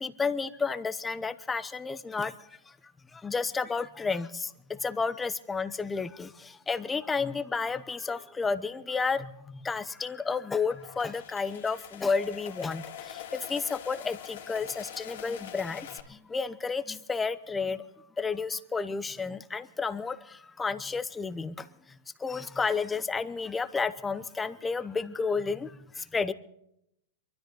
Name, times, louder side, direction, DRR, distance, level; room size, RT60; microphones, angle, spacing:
voice 1, 0.0-2.3 3.2-4.3 4.8-6.3 6.7-9.3 9.6-12.8 13.5-15.9 16.3-17.8 18.2-20.2 20.6-21.5 22.2-25.7 26.1-26.3, left 4 dB, 15° left, 13 dB, 0.8 m, -31 dB
sound 1, 10.4-16.0, left 10 dB, 75° left, 2.5 m, -44 dB
23.0 x 13.0 x 3.9 m, 0.77 s
hypercardioid pair, 115°, 0 cm